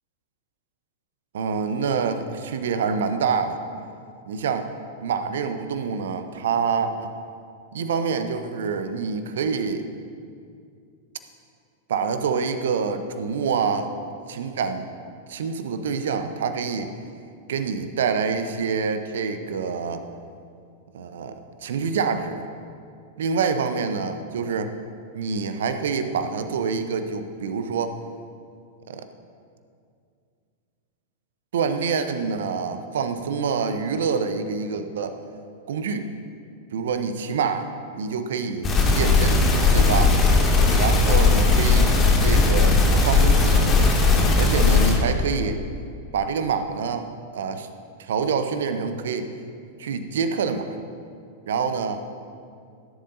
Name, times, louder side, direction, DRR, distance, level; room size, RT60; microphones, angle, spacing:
voice 1, 1.3-3.6 4.3-4.7 5.0-7.2 7.7-9.8 11.9-13.9 14.3-14.9 15.3-16.9 17.5-20.0 20.9-22.5 23.2-24.7 25.1-28.0 28.9-29.1 31.5-35.2 35.7-36.1 36.7-37.7 37.9-39.4 39.7-40.1 40.7-41.9 42.2-43.9 44.3-45.6 46.1-47.1 47.3-47.7 48.0-49.3 49.8-50.8 51.5-52.0, right 5 dB, 65° right, 9 dB, 0.8 m, -26 dB
sound 1, 38.6-45.0, left 3 dB, 25° left, 2.2 m, -18 dB
17.0 x 11.0 x 2.7 m, 2.3 s
figure-of-eight pair, 95°, 0 cm